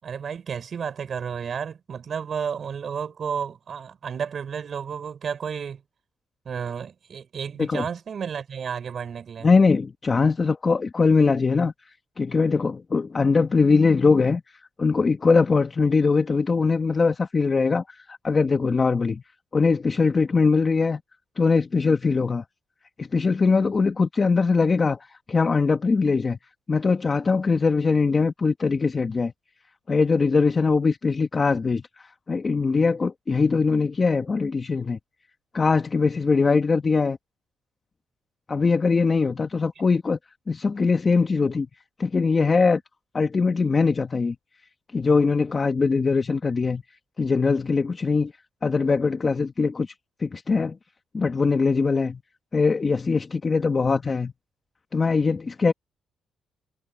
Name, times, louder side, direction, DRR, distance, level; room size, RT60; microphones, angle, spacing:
voice 1, 0.0-5.8 6.5-9.5, right 7 dB, 50° right, 7.0 m, -32 dB
voice 2, 9.4-11.7 12.2-14.4 14.8-19.2 19.5-21.0 21.4-22.4 23.0-25.0 25.3-26.4 26.7-29.3 29.9-35.0 35.5-37.2 38.5-40.2 40.5-41.7 42.0-42.8 43.1-44.4 44.9-46.8 47.2-48.3 48.6-49.9 50.2-50.8 51.1-52.2 52.5-54.3 54.9-55.7, left 4 dB, 30° left, 1.8 m, -21 dB
cardioid pair, 90°, 0 cm